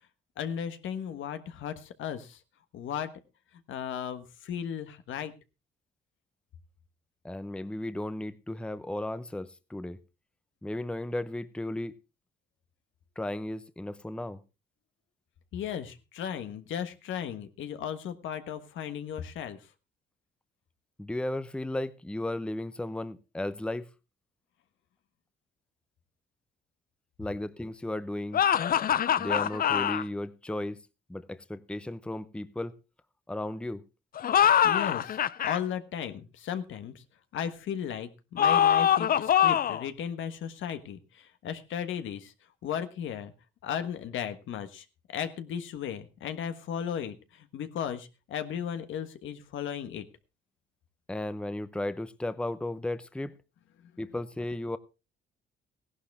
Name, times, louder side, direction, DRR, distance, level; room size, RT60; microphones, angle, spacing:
voice 1, 0.4-2.4 2.7-3.1 3.7-5.3 15.5-19.6 34.6-37.0 37.3-42.3 42.6-43.3 43.6-50.1, left 8 dB, 75° left, 1.4 m, -35 dB
voice 2, 7.2-10.0 10.6-12.0 13.2-14.4 21.0-23.9 27.2-28.4 29.2-30.8 31.1-32.7 33.3-33.8 51.1-53.4 54.0-54.8, left 1 dB, 5° left, 0.7 m, -35 dB
sound 1, 28.3-30.0 34.2-35.6 38.4-39.9, left 9 dB, 45° left, 0.6 m, -24 dB
16.0 x 11.5 x 3.5 m
cardioid pair, 90°, 20 cm